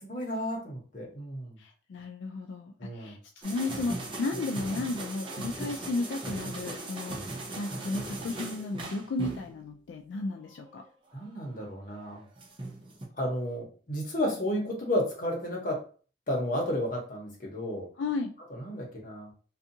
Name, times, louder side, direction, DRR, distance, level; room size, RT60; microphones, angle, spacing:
voice 1, 0.0-1.6 2.8-3.2 11.1-12.2 13.1-15.9 16.3-17.9 18.5-19.3, left 1 dB, 50° left, -2 dB, 0.9 m, -32 dB
voice 2, 1.6-7.2 7.6-10.8 18.0-18.3, left 3 dB, 85° left, 3 dB, 0.3 m, -34 dB
sound 1, 3.4-9.6 10.3-10.9 11.9-13.1, right 2 dB, 30° right, 0.6 m, -38 dB
2.6 x 2.4 x 2.6 m, 0.40 s
head